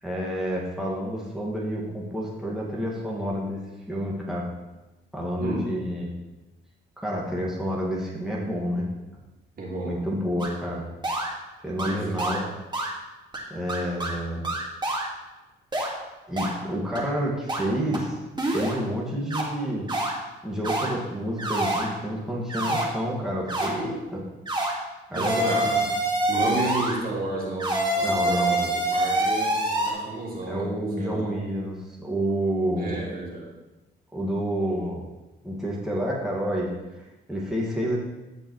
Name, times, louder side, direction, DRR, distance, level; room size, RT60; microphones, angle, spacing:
voice 1, 0.0-3.6 3.9-4.5 5.1-6.1 7.0-8.9 9.8-10.9 11.6-12.4 13.5-14.5 16.3-18.2 18.5-19.9 20.4-24.2 25.1-25.7 28.0-28.7 30.5-33.0 34.1-35.0 35.4-38.0, equal, ahead, -5 dB, 2.1 m, -29 dB
voice 2, 9.6-10.0 11.8-12.3 25.1-25.8 26.3-31.4 32.8-33.5, right 2 dB, 50° right, -4 dB, 3.0 m, -32 dB
sound 1, 10.4-10.5 11.0-11.3 11.8-11.9 12.2-12.4 12.7-12.9 13.3-13.4 13.7-14.1 14.4-15.0 15.7-15.9 16.4-16.5 16.9-17.0 17.5-17.6 17.9-18.0 18.4-18.8 19.3-19.4 19.9-20.1 20.6-20.9 21.4-21.8 22.5-22.8 23.5-23.7 24.5-24.7 25.1-26.9 27.6-29.9, right 1 dB, 20° right, 2.1 m, -26 dB
15.5 x 5.4 x 3.3 m, 1.1 s
cardioid pair, 90°, 20 cm